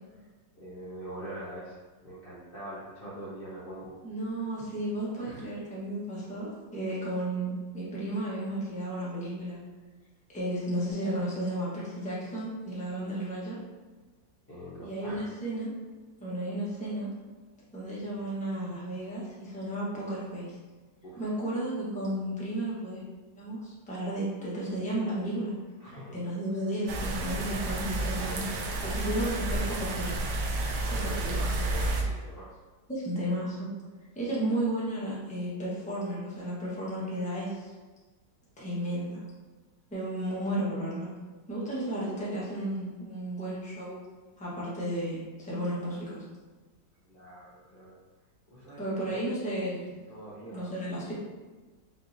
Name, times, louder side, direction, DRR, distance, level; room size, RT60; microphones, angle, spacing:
voice 1, 0.5-4.0 5.2-5.4 14.5-15.4 21.0-21.2 25.8-26.2 26.5-26.7 28.8-29.4 30.9-32.6 34.3-34.4 47.1-48.0 48.5-49.2 50.1-50.8, right 1 dB, 50° left, -8 dB, 0.7 m, -44 dB
voice 2, 4.0-9.6 10.3-13.6 14.8-15.7 16.2-17.1 17.7-20.6 21.2-23.0 23.4-25.5 26.1-30.2 30.9-31.3 32.9-33.7 34.1-37.7 38.6-39.2 39.9-41.1 41.5-44.0 44.4-46.2 48.8-49.8 50.5-51.1, right 1 dB, 5° left, -8 dB, 0.8 m, -33 dB
sound 1, 26.9-32.0, right 2 dB, 85° right, 1.3 m, -31 dB
5.4 x 2.8 x 2.6 m, 1.3 s
omnidirectional pair, 2.0 m